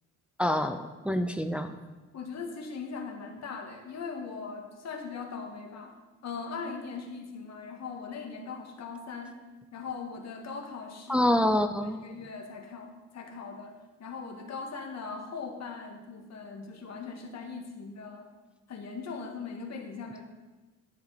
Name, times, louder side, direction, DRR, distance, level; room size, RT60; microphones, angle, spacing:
voice 1, 0.4-1.7 11.1-12.0, left 1 dB, 5° right, 7 dB, 0.6 m, -26 dB
voice 2, 2.1-6.0 6.2-9.4 9.7-11.3 11.8-18.3 18.7-20.2, left 5 dB, 60° left, 2 dB, 2.0 m, -40 dB
11.0 x 9.4 x 4.2 m, 1.2 s
cardioid pair, 90°, 30 cm